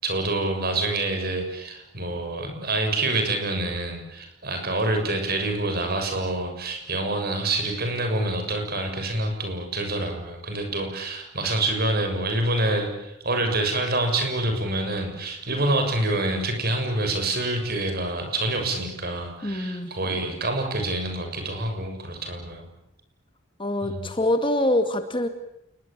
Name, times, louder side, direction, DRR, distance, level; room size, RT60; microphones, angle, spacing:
voice 1, 0.0-22.7 23.8-24.1, right 2 dB, 50° right, 5 dB, 6.9 m, -27 dB
voice 2, 19.4-19.9 23.6-25.3, left 1 dB, 25° left, 8 dB, 2.1 m, -24 dB
28.5 x 21.0 x 8.8 m, 0.84 s
head